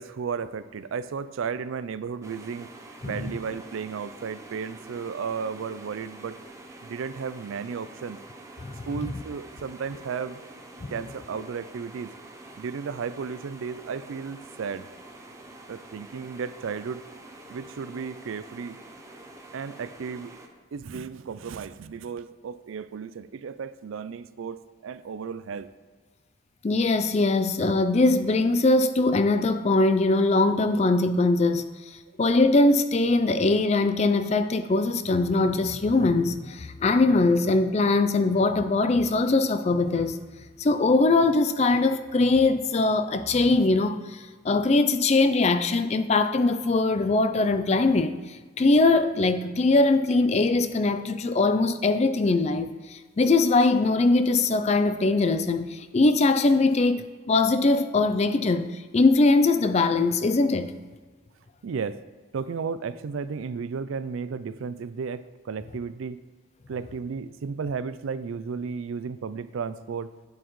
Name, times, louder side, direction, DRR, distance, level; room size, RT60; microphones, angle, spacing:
voice 1, 0.0-2.7 3.0-6.4 6.8-8.2 8.9-10.4 10.9-12.1 12.6-14.9 15.7-17.0 17.5-18.8 19.5-20.3 20.7-25.7 61.6-62.0 62.3-66.2 66.7-70.1, right 5 dB, 85° right, 14 dB, 0.4 m, -34 dB
sound 1, 2.2-20.5, right 2 dB, 15° right, 0.7 m, -46 dB
voice 2, 26.6-31.7 32.2-40.2 40.6-44.2 44.4-48.1 48.6-58.7 58.9-60.7, left 3 dB, 35° left, 10 dB, 0.4 m, -21 dB
10.0 x 7.9 x 3.1 m, 1.4 s
head